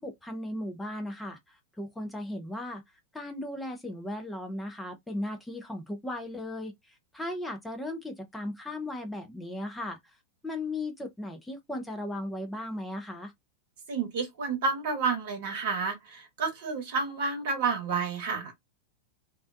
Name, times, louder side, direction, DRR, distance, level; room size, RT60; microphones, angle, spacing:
voice 1, 0.0-2.8 3.1-10.0 10.4-13.3, left 1 dB, 5° left, 0.6 m, -36 dB
voice 2, 13.9-18.6, right 5 dB, 55° right, 1.0 m, -30 dB
2.5 x 2.2 x 2.2 m
figure-of-eight pair, 90°, 0 cm